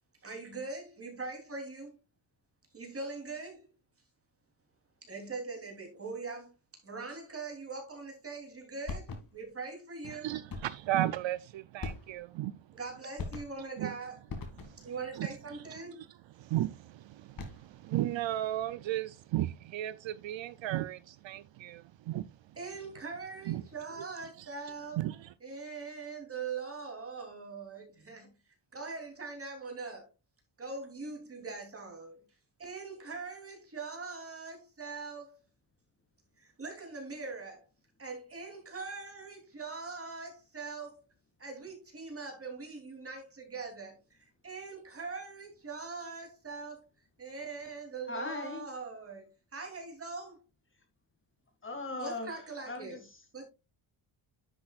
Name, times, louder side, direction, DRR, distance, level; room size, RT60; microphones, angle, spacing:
voice 1, 0.2-2.0 2.7-3.7 5.0-6.5 6.8-10.3 12.7-14.2 14.8-16.0 22.6-25.0 25.4-28.3 28.7-30.1 30.6-32.2 32.6-35.4 36.4-37.6 38.0-41.0 41.4-46.9 47.2-50.4 52.0-53.0 53.3-53.4, right 4 dB, 25° right, 3.1 m, -42 dB
sound 1, 8.9-9.5 10.5-10.9 11.8-12.4 13.2-13.8 14.3-15.0 17.2-17.8, left 4 dB, 45° left, 2.3 m, -41 dB
voice 2, 10.0-12.6 13.8-13.9 14.6-15.3 16.0-16.1 16.4-22.6 23.5-23.6 24.4-24.5 25.0-25.3, right 14 dB, 65° right, 0.5 m, -35 dB
voice 3, 48.1-48.6 51.6-53.2, left 3 dB, 25° left, 2.0 m, -39 dB
10.0 x 7.7 x 2.4 m
wide cardioid pair, 160°, 49 cm